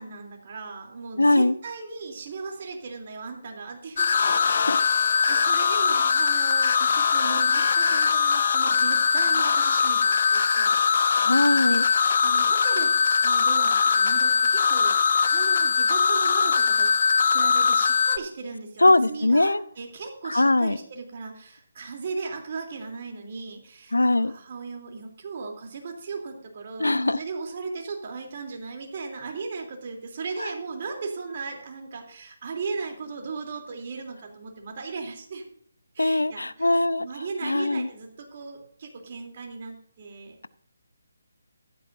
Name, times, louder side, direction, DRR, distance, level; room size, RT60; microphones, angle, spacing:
voice 1, 0.0-4.4 4.7-10.8 11.7-12.9 13.2-15.0 15.3-16.9 17.3-35.4 35.9-40.3, right 4 dB, 40° right, 2 dB, 3.2 m, -37 dB
voice 2, 1.2-1.5 4.4-4.8 11.2-11.8 18.8-19.6 20.2-20.8 23.9-24.3 26.8-27.2 30.4-30.5 36.0-37.1 37.4-37.9, left 2 dB, 80° left, 17 dB, 0.6 m, -21 dB
sound 1, 4.0-18.2, left 6 dB, 50° left, 0.9 m, -21 dB
15.0 x 12.5 x 2.7 m, 0.64 s
figure-of-eight pair, 145°, 0 cm